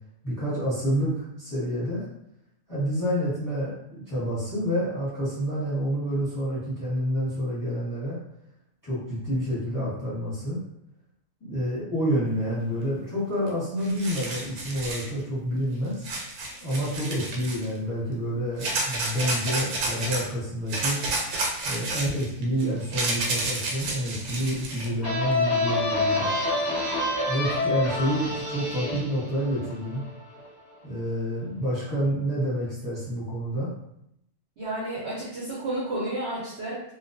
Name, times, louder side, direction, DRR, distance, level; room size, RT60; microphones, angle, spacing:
voice 1, 0.2-2.1 2.7-8.2 8.8-10.6 11.4-16.1 16.6-21.0 21.6-26.3 27.3-30.0 30.8-33.7, equal, 15° left, -10 dB, 0.9 m, -28 dB
sound 1, 13.5-13.6 13.8-15.1 16.0-17.7 18.6-20.2 20.7-24.9, right 2 dB, 80° right, 1.0 m, -30 dB
sound 2, 25.0-30.5, left 2 dB, 20° right, 0.7 m, -28 dB
voice 2, 34.6-36.8, right 1 dB, 55° right, -8 dB, 0.8 m, -31 dB
2.3 x 2.2 x 2.5 m, 0.77 s
omnidirectional pair, 1.6 m